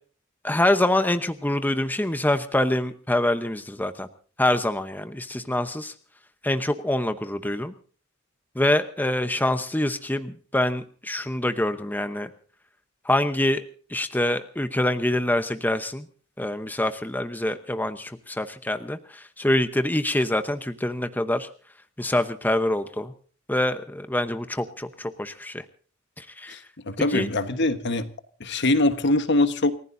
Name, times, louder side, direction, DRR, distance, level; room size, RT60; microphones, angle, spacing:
voice 1, 0.4-4.1 4.4-5.9 6.4-7.7 8.6-12.3 13.1-13.6 13.9-16.0 16.4-21.5 22.0-23.1 23.5-25.6 26.2-26.6 27.1-27.3, left 1 dB, 10° left, 9 dB, 0.9 m, -25 dB
voice 2, 26.8-28.1 28.4-29.7, left 2 dB, 60° left, 10 dB, 1.3 m, -23 dB
29.0 x 15.5 x 2.7 m, 0.43 s
head